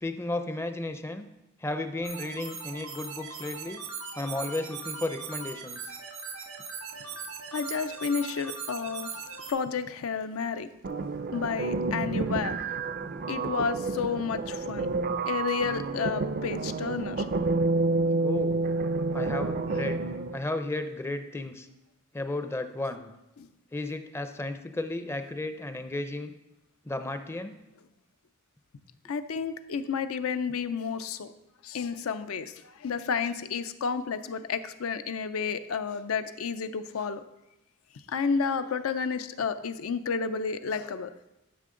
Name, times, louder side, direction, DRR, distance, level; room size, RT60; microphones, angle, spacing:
voice 1, 0.0-1.3 1.6-3.8 4.2-5.9 18.2-18.5 19.1-20.0 20.3-21.7 22.1-23.1 23.7-26.3 26.8-27.5, left 2 dB, 10° left, 9 dB, 0.4 m, -33 dB
sound 1, 2.0-9.5, right 5 dB, 85° right, 1.2 m, -39 dB
voice 2, 7.5-9.2 9.5-10.7 11.3-12.6 13.3-14.9 15.3-17.3 19.8-19.9 23.4-23.5 29.1-31.3 31.6-37.2 38.1-41.1, left 5 dB, 80° left, 11 dB, 0.5 m, -31 dB
sound 2, 10.8-20.4, right 3 dB, 45° right, 0.4 m, -29 dB
11.0 x 5.8 x 3.7 m, 0.94 s
head